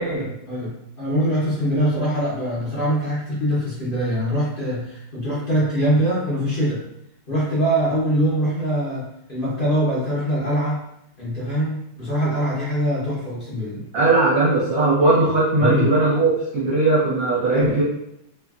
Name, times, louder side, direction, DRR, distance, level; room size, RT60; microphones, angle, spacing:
voice 1, 0.4-6.8 7.3-10.8 11.2-13.9 15.6-15.9 17.5-17.8, equal, 60° left, -9 dB, 0.5 m, -23 dB
voice 2, 13.9-17.8, right 2 dB, 60° right, -8 dB, 1.0 m, -19 dB
3.1 x 2.5 x 2.3 m, 0.78 s
omnidirectional pair, 2.2 m